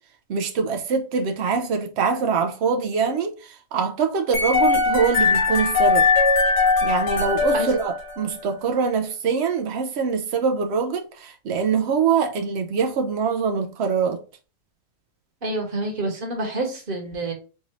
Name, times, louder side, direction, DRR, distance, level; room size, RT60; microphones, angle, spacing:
voice 1, 0.3-6.1 6.8-14.2, right 5 dB, 90° right, 0.5 m, -24 dB
sound 1, 4.3-8.4, left 4 dB, 70° left, 1.5 m, -20 dB
voice 2, 15.4-17.3, right 2 dB, 35° right, 1.1 m, -27 dB
4.0 x 3.6 x 3.0 m
omnidirectional pair, 1.8 m